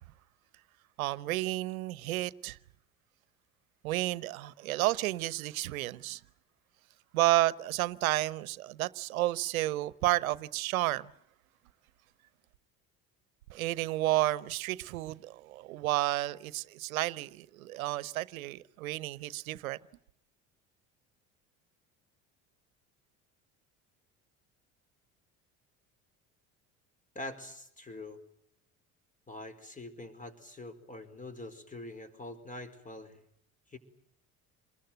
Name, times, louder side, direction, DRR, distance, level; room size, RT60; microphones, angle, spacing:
voice 1, 1.0-2.6 3.8-6.2 7.1-11.1 13.5-19.8, right 16 dB, 85° right, 1.0 m, -31 dB
voice 2, 27.1-28.2 29.3-33.2 33.7-33.8, left 2 dB, 20° left, 4.9 m, -44 dB
28.0 x 21.0 x 9.2 m
hypercardioid pair, 65°, 41 cm